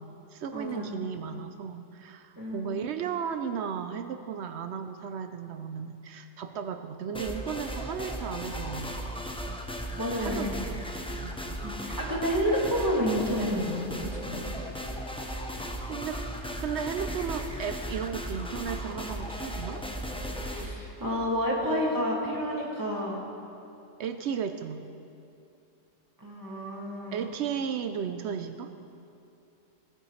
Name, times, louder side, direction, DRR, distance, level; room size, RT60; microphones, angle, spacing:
voice 1, 0.0-9.0 10.2-10.9 11.2-11.6 15.9-19.8 24.0-24.8 27.1-28.7, right 7 dB, 65° right, 9 dB, 0.8 m, -35 dB
voice 2, 0.5-1.0 2.4-2.7 10.0-10.5 11.6-14.5 20.5-23.2 26.2-27.2, equal, 15° right, -4 dB, 2.0 m, -30 dB
sound 1, 7.1-20.7, equal, 5° left, 0.4 m, -36 dB
18.0 x 9.0 x 3.2 m, 2.7 s
omnidirectional pair, 1.3 m